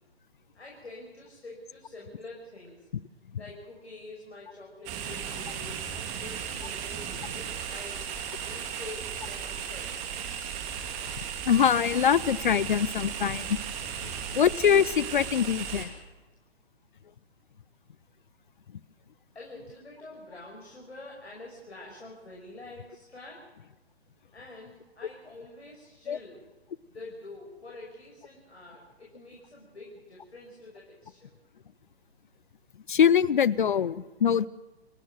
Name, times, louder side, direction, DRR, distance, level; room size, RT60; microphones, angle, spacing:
voice 1, 0.5-2.9 3.4-9.9 14.0-14.4 19.3-23.4 24.3-26.4 26.9-31.3, left 2 dB, 85° left, -2 dB, 5.9 m, -46 dB
sound 1, 4.9-15.9, right 8 dB, 20° right, 2.4 m, -36 dB
voice 2, 11.4-13.6 14.4-15.9 26.1-26.2 32.9-34.5, left 8 dB, 50° left, 21 dB, 0.6 m, -23 dB
29.0 x 11.5 x 7.6 m, 1.1 s
figure-of-eight pair, 140°, 32 cm